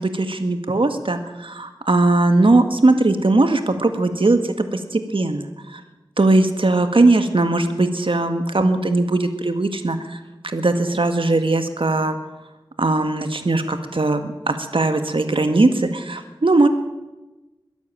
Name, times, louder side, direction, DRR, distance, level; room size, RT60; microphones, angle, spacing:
voice 1, 0.0-5.8 6.2-12.2 12.8-16.7, right 2 dB, 85° right, 8 dB, 1.8 m, -19 dB
23.0 x 12.5 x 8.9 m, 1.1 s
wide cardioid pair, 45°, 9 cm